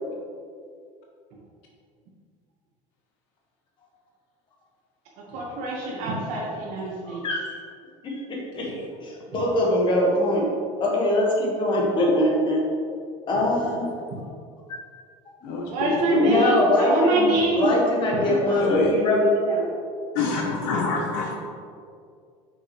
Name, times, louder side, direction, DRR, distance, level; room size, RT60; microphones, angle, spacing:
voice 1, 5.3-7.2 15.7-17.7 18.0-18.8, right 2 dB, 70° right, -3 dB, 1.4 m, -25 dB
voice 2, 7.1-7.6 8.0-8.7 9.0-10.5 10.8-12.6 13.3-13.9 15.4-15.5 16.2-17.3 17.6-19.7, left 1 dB, 35° left, -2 dB, 1.6 m, -22 dB
voice 3, 8.5-8.8 13.6-13.8 15.4-16.3 18.5-18.9 20.1-21.4, left 4 dB, 80° left, 0 dB, 0.9 m, -27 dB
6.3 x 5.6 x 3.2 m, 2.3 s
cardioid pair, 135°, 14 cm